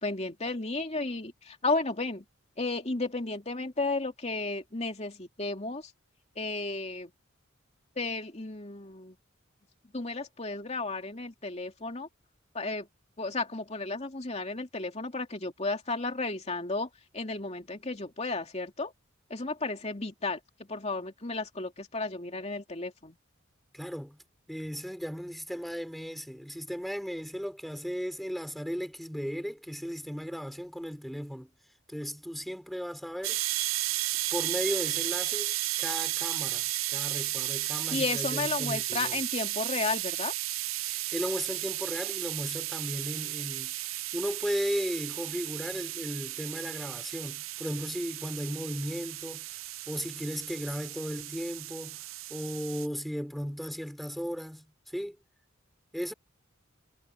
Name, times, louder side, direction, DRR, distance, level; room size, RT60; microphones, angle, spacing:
voice 1, 0.0-2.2 2.6-5.9 6.4-7.1 8.0-9.2 9.9-12.1 12.5-12.9 13.2-18.9 19.3-23.2 37.9-40.3, left 3 dB, 30° left, 2.7 m, -33 dB
voice 2, 23.7-24.2 24.5-31.5 31.9-33.4 34.3-39.2 40.8-49.5 49.9-52.0 52.3-55.2 55.9-56.1, equal, ahead, 5.7 m, -36 dB
sound 1, 33.2-52.9, right 16 dB, 85° right, 0.6 m, -34 dB
head